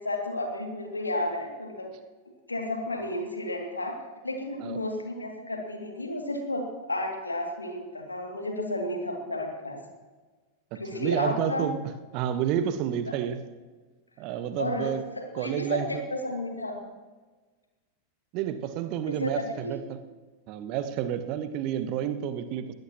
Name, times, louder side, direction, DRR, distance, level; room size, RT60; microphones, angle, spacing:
voice 1, 0.0-1.9 2.5-3.9 4.2-9.8 10.7-11.7 14.6-16.8 19.1-19.8, left 1 dB, 80° left, 2 dB, 2.6 m, -32 dB
voice 2, 10.7-11.8 12.1-13.4 14.2-15.0 15.3-16.0 18.3-20.0 20.5-22.7, right 10 dB, 40° right, 11 dB, 1.2 m, -30 dB
21.5 x 16.0 x 3.1 m, 1.3 s
figure-of-eight pair, 90°, 0 cm